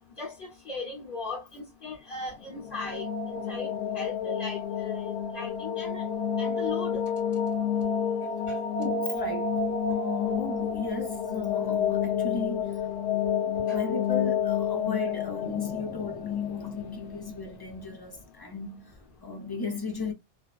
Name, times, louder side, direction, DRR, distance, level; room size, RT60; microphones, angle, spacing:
voice 1, 0.2-3.1 3.5-3.7 3.9-6.1 6.4-7.0 8.5-8.6 13.7-13.8, left 3 dB, 55° left, 1.1 m, -38 dB
sound 1, 2.4-17.4, left 7 dB, 85° left, 0.9 m, -29 dB
voice 2, 8.8-12.8 13.7-20.1, left 4 dB, 30° left, 0.5 m, -35 dB
2.5 x 2.1 x 2.3 m
omnidirectional pair, 1.1 m